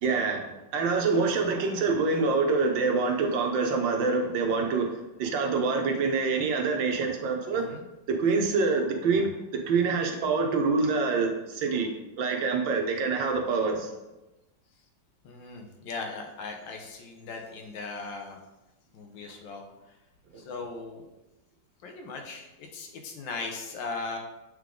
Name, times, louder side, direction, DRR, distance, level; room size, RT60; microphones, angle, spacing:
voice 1, 0.0-7.7 8.1-11.9 12.2-13.9 20.3-20.4, right 4 dB, 85° right, 3 dB, 1.6 m, -26 dB
voice 2, 7.5-7.8 15.2-18.4 18.9-19.6 20.4-21.0 21.8-24.2, left 4 dB, 90° left, 3 dB, 1.6 m, -38 dB
7.9 x 3.7 x 3.7 m, 1.0 s
omnidirectional pair, 2.0 m